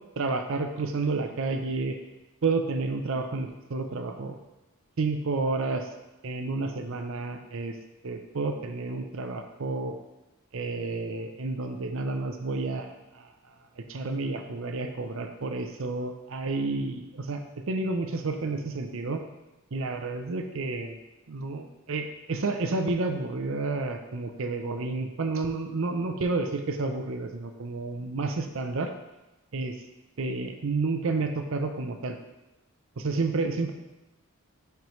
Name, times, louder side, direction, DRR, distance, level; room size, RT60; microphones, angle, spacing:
voice 1, 0.2-2.0 2.4-4.4 5.0-5.9 6.2-7.7 8.0-9.9 10.5-13.3 13.9-17.4 17.7-19.2 19.7-21.0 21.3-28.9 29.5-29.8 30.2-32.2 33.0-33.7, right 3 dB, 60° right, 6 dB, 0.6 m, -30 dB
10.5 x 4.6 x 3.1 m, 1.0 s
head